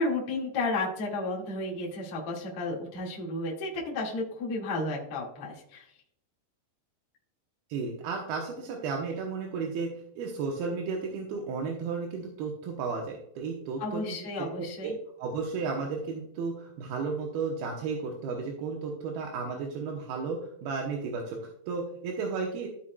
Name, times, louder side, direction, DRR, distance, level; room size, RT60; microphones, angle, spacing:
voice 1, 0.0-5.9 13.8-14.9, left 2 dB, 45° left, -3 dB, 2.3 m, -32 dB
voice 2, 7.7-9.9 10.2-14.9 15.2-22.7, right 4 dB, 70° right, 0 dB, 2.6 m, -33 dB
15.0 x 5.6 x 2.3 m, 0.70 s
omnidirectional pair, 5.2 m